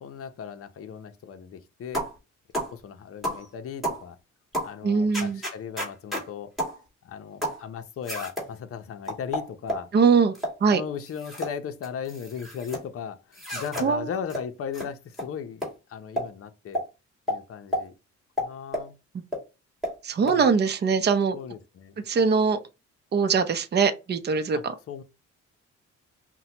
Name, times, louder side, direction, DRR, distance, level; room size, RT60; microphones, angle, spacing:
voice 1, 0.0-2.0 2.7-4.2 4.6-6.5 7.0-9.9 10.7-16.8 17.3-17.9 18.4-18.9 20.2-20.5 21.3-22.0 24.5-25.0, left 7 dB, 50° left, 0.6 m, -37 dB
sound 1, 1.9-2.2 2.5-2.7 3.2-3.4 3.8-4.0 4.5-4.7 5.1-6.3 6.6-6.8 7.4-7.6 8.0-8.5 9.1-9.9 10.3-10.6 11.1-11.5 11.8-12.8 13.3-13.9 14.3-14.4 14.7-14.9 15.1-15.3 15.6-15.7 16.2-16.3 16.7-16.9 17.3-17.4 17.7-17.8 18.4-18.9 19.3-19.4 19.8-19.9 20.3-20.4, equal, ahead, 2.3 m, -30 dB
voice 2, 4.8-5.4 9.9-10.3 10.6-10.8 13.8-14.1 20.0-21.4 22.1-22.6 23.1-24.7, right 5 dB, 35° right, 0.6 m, -22 dB
5.5 x 2.2 x 2.8 m
cardioid pair, 90°, 30 cm